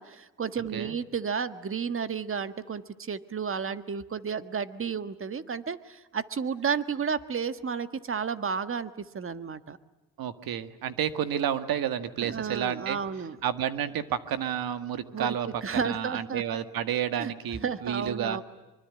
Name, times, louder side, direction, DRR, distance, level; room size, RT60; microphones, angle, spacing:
voice 1, 0.0-9.8 12.2-13.4 15.1-16.6 17.2-17.3 17.6-18.4, right 6 dB, 35° right, 12 dB, 1.6 m, -32 dB
voice 2, 10.2-13.0 13.4-15.5 15.7-18.4, right 9 dB, 75° right, 10 dB, 1.9 m, -30 dB
24.5 x 24.5 x 9.7 m, 1.1 s
cardioid pair, 90°, 36 cm